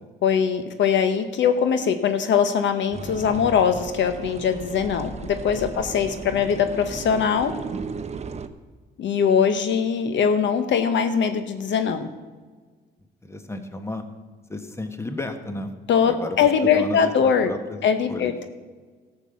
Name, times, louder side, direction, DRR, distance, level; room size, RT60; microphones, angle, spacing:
voice 1, 0.2-7.5 9.0-12.1 15.9-17.5 17.8-18.5, left 7 dB, 70° left, 9 dB, 1.0 m, -21 dB
sound 1, 2.9-8.5, right 5 dB, 35° right, 0.8 m, -35 dB
voice 2, 13.2-14.0 14.5-15.7 16.1-18.3, left 2 dB, 15° left, 7 dB, 1.3 m, -33 dB
13.0 x 6.9 x 7.0 m, 1.4 s
cardioid pair, 90°, 20 cm